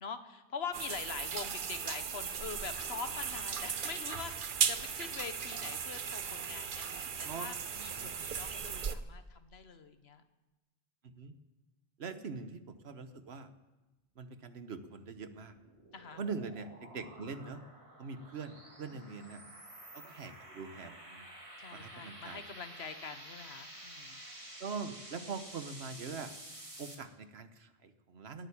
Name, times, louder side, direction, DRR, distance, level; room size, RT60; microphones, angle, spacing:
voice 1, 0.0-10.2 12.0-12.7 15.9-16.2 18.9-19.6 21.6-24.2, left 5 dB, 85° left, 10 dB, 1.4 m, -44 dB
sound 1, 0.7-9.0, right 7 dB, 55° right, 0.9 m, -37 dB
voice 2, 11.0-11.3 12.0-13.5 14.2-15.6 16.2-17.6 18.0-19.4 19.9-21.3 21.7-22.4 24.6-26.3 26.8-28.5, right 4 dB, 85° right, 10 dB, 1.4 m, -43 dB
sound 2, 15.1-27.0, right 1 dB, 30° right, 2.2 m, -51 dB
18.0 x 9.2 x 8.6 m, 1.1 s
omnidirectional pair, 1.0 m